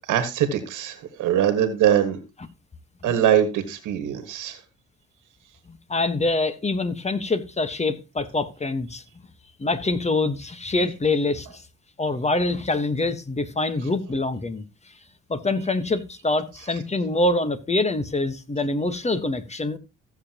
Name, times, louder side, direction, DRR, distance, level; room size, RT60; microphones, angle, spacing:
voice 1, 0.1-2.2 3.0-4.6, right 10 dB, 85° right, 1.6 m, -22 dB
voice 2, 5.7-9.0 9.6-11.6 12.0-14.6 15.3-19.8, left 2 dB, 20° left, 1.3 m, -25 dB
16.0 x 7.0 x 2.9 m
cardioid pair, 90°, 30 cm